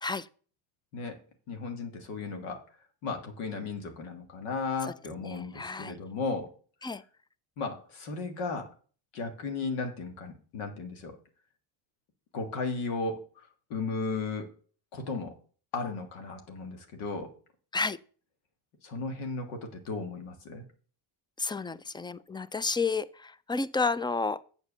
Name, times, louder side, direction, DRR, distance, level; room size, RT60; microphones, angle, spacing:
voice 1, 1.5-2.6 3.0-6.5 7.6-8.7 9.1-11.2 12.3-13.2 13.7-14.5 14.9-15.3 15.7-17.3 18.8-20.6, left 4 dB, 85° left, 1.7 m, -35 dB
voice 2, 5.2-6.0 6.8-7.0 17.7-18.0 21.4-24.4, left 4 dB, 10° left, 0.3 m, -31 dB
7.9 x 4.8 x 6.8 m
supercardioid pair, 70°, 49 cm